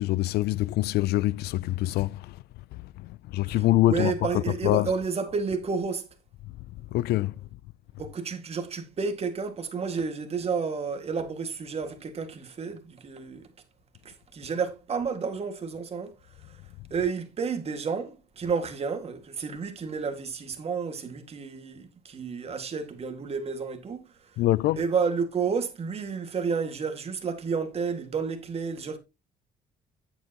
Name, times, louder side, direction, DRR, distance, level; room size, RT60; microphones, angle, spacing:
voice 1, 0.0-2.4 3.0-4.9 6.9-7.3 24.4-24.8, left 16 dB, 70° left, 0.4 m, -25 dB
voice 2, 3.4-6.1 8.0-13.5 14.0-16.6 16.9-24.4 24.8-29.0, right 5 dB, 35° right, 2.0 m, -31 dB
9.8 x 8.0 x 2.9 m
cardioid pair, 110°, 17 cm